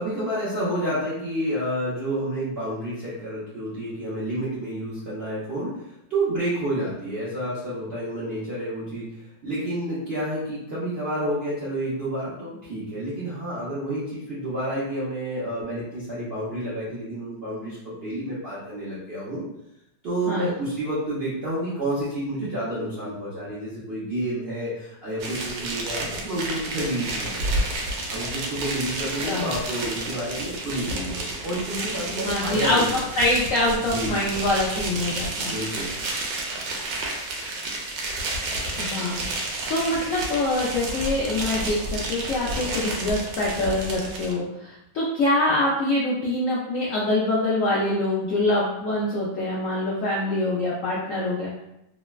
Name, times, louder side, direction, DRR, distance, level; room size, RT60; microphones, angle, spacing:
voice 1, 0.0-19.5 20.0-27.7 28.1-33.0 33.8-34.2 35.5-35.9, right 1 dB, 65° right, -10 dB, 0.6 m, -30 dB
sound 1, 25.2-44.3, right 2 dB, 80° right, 1.2 m, -31 dB
voice 2, 32.2-32.8 33.1-35.5 38.8-51.6, left 1 dB, 75° left, -5 dB, 0.7 m, -25 dB
3.2 x 2.1 x 2.2 m, 0.84 s
omnidirectional pair, 1.9 m